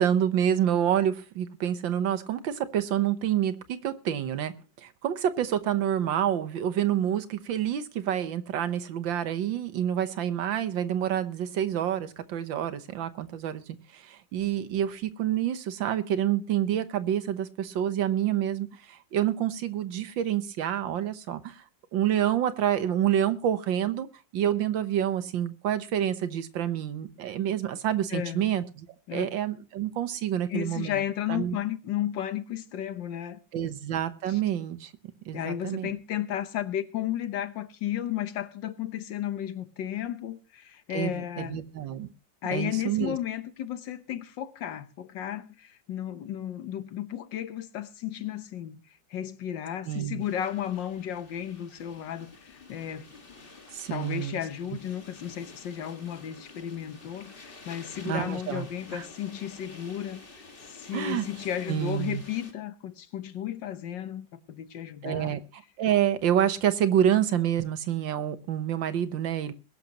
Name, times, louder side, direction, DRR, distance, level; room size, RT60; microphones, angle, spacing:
voice 1, 0.0-21.6 21.9-24.1 24.3-28.9 29.1-31.0 31.3-31.6 33.5-34.9 35.3-35.9 40.9-42.1 42.5-43.2 49.9-50.2 53.7-54.4 58.1-58.7 58.9-59.0 60.9-61.3 61.7-62.2 65.0-69.5, right 10 dB, 85° right, 1.8 m, -28 dB
voice 2, 28.1-28.6 29.1-29.3 30.5-33.8 34.3-34.4 35.3-41.7 42.4-48.8 49.1-53.1 53.9-65.4, left 10 dB, 75° left, 1.7 m, -34 dB
sound 1, 50.2-62.5, left 3 dB, 30° left, 1.9 m, -49 dB
21.0 x 11.5 x 2.9 m
omnidirectional pair, 2.0 m